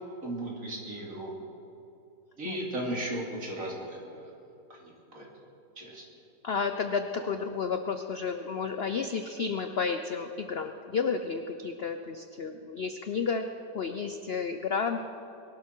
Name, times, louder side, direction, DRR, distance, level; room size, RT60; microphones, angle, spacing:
voice 1, 0.2-1.3 2.4-4.4 4.7-5.3 5.8-6.0 7.1-7.2, right 1 dB, 50° right, -2 dB, 3.1 m, -36 dB
voice 2, 6.4-13.5 13.7-15.1, left 5 dB, 60° left, 7 dB, 0.6 m, -31 dB
22.0 x 12.5 x 4.6 m, 2.8 s
omnidirectional pair, 1.8 m